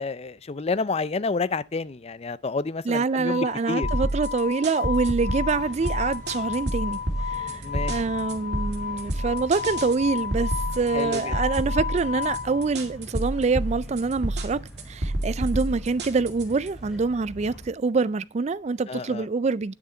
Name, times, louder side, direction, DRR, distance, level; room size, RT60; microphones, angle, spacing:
voice 1, 0.0-3.9 7.6-8.0 10.9-11.3 18.9-19.2, left 4 dB, 35° left, 0.5 m, -29 dB
voice 2, 2.8-7.0 7.3-7.6 7.9-14.6 14.9-19.7, right 4 dB, 35° right, 0.4 m, -25 dB
sound 1, 3.3-12.9 17.5-17.6, left 8 dB, 70° left, 2.9 m, -33 dB
sound 2, 3.8-16.7, right 1 dB, 65° right, 2.2 m, -30 dB
sound 3, 5.2-17.7, equal, ahead, 4.0 m, -43 dB
9.8 x 6.6 x 4.3 m
head